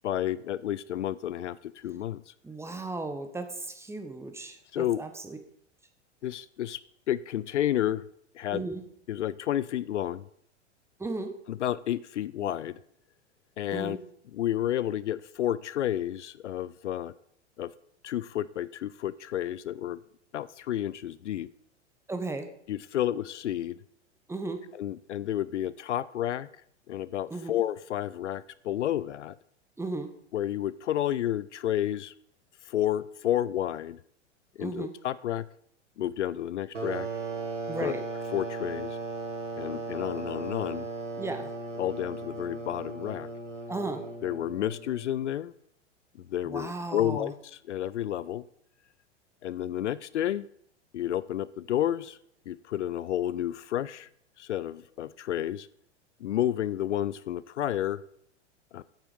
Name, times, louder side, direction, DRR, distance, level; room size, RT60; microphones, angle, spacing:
voice 1, 0.0-2.2 4.7-5.0 6.2-6.8 7.1-8.0 8.3-8.7 9.1-10.3 11.5-12.8 13.6-14.0 14.3-17.1 17.6-17.7 18.0-20.0 20.3-21.5 22.7-23.8 24.7-26.5 26.9-29.4 30.3-32.1 32.7-34.0 34.6-35.5 36.0-37.1 37.8-37.9 38.3-39.0 39.6-40.9 41.8-43.3 44.2-45.5 46.2-48.4 49.4-50.5 50.9-52.2 52.5-54.1 54.4-55.7 56.2-58.0 58.7-58.8, left 12 dB, 75° left, 18 dB, 0.5 m, -31 dB
voice 2, 2.4-5.4 8.5-8.8 11.0-11.3 13.7-14.0 22.1-22.5 24.3-24.6 27.3-27.5 29.8-30.1 34.6-34.9 37.7-38.0 41.2-41.5 43.7-44.0 46.5-47.3, right 3 dB, 5° right, 7 dB, 1.1 m, -35 dB
sound 1, 36.7-45.1, right 3 dB, 90° right, 1.5 m, -37 dB
9.0 x 8.1 x 5.1 m, 0.69 s
figure-of-eight pair, 95°, 36 cm